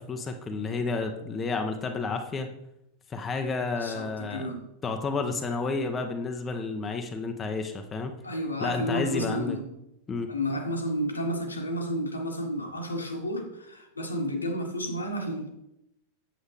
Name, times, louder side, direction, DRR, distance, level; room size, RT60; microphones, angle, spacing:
voice 1, 0.0-2.5 3.1-4.5 4.8-8.2 8.6-9.6 10.1-10.3, left 4 dB, 20° left, 5 dB, 0.8 m, -31 dB
voice 2, 3.8-4.7 8.2-9.6 10.3-15.5, equal, 80° left, 2 dB, 1.5 m, -31 dB
8.2 x 7.6 x 3.4 m, 0.85 s
figure-of-eight pair, 90°, 0 cm